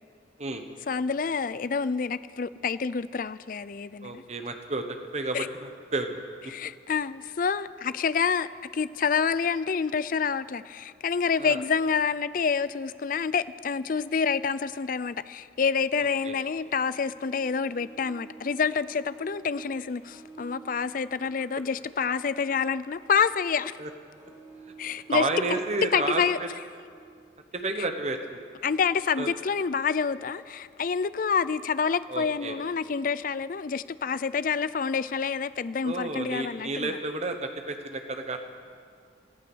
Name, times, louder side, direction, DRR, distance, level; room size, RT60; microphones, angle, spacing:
voice 1, 0.9-4.2 5.3-5.5 6.5-23.8 24.8-25.3 25.9-26.4 28.6-37.0, left 6 dB, 45° left, 16 dB, 0.4 m, -28 dB
voice 2, 4.0-6.2 11.4-11.6 16.2-16.3 23.8-23.9 25.1-26.2 27.5-28.4 29.2-29.3 32.1-32.6 35.8-38.4, right 2 dB, 35° right, 6 dB, 1.2 m, -31 dB
Harp, 16.4-27.4 27.7-27.8, right 4 dB, 15° right, 4.3 m, -52 dB
17.0 x 13.5 x 6.3 m, 2.2 s
head